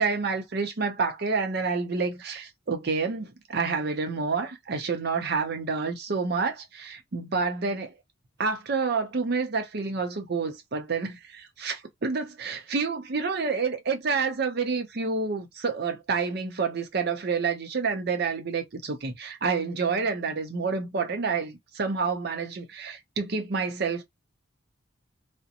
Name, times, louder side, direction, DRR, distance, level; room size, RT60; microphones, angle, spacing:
voice 1, 0.0-7.9 8.4-24.0, right 4 dB, 50° right, 0.5 m, -28 dB
2.5 x 2.1 x 2.7 m
head